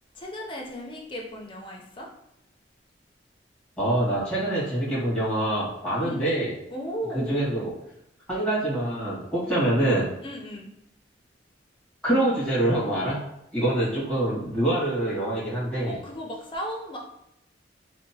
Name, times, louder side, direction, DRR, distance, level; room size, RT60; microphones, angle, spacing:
voice 1, 0.1-2.1 6.0-6.2 6.7-7.4 10.2-10.7 15.8-17.0, equal, 30° left, 0 dB, 0.4 m, -35 dB
voice 2, 3.8-6.5 7.1-7.7 8.3-10.1 12.0-13.2 13.5-16.0, right 1 dB, 5° left, -9 dB, 1.2 m, -25 dB
2.8 x 2.1 x 2.7 m, 0.80 s
head